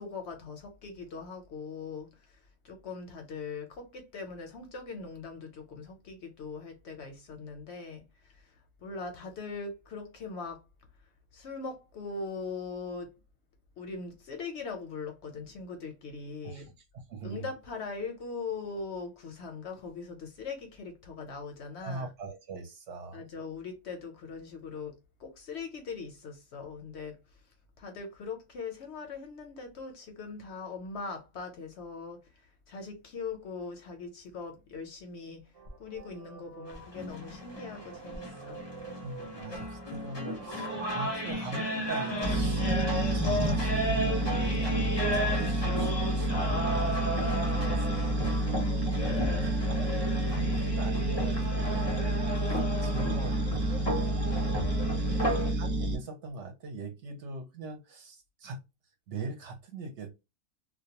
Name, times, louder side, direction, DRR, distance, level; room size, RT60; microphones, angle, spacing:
voice 1, 0.0-10.6 11.3-13.2 13.8-16.7 17.2-22.1 23.1-27.4 27.8-35.5 35.8-38.6 48.2-49.5 55.0-55.5, left 4 dB, 65° left, 0.7 m, -41 dB
voice 2, 17.1-17.4 21.8-23.2 39.0-48.3 49.7-54.6 55.3-58.6 59.1-60.1, right 3 dB, 65° right, 0.8 m, -42 dB
sound 1, 35.5-45.5, right 5 dB, 45° right, 0.4 m, -48 dB
sound 2, 36.7-55.5, equal, 30° left, 0.4 m, -34 dB
sound 3, 42.2-55.9, right 1 dB, 25° right, 1.0 m, -29 dB
2.3 x 2.1 x 2.7 m
omnidirectional pair, 1.4 m